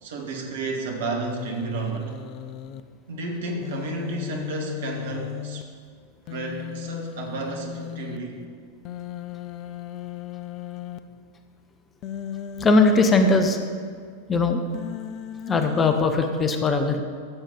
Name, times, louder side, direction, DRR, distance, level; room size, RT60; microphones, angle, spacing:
voice 1, 0.0-2.2 3.1-5.7 6.3-8.4, right 3 dB, 55° right, 1 dB, 1.9 m, -31 dB
Human voice, 1.3-2.8 3.6-5.6 6.3-8.2 8.8-11.0 12.0-13.6 14.7-16.0, left 10 dB, 40° left, 0.5 m, -36 dB
voice 2, 12.6-13.6 14.3-14.6 15.5-17.0, left 3 dB, 20° left, 6 dB, 0.9 m, -20 dB
13.5 x 7.4 x 5.5 m, 2.1 s
figure-of-eight pair, 90°, 0 cm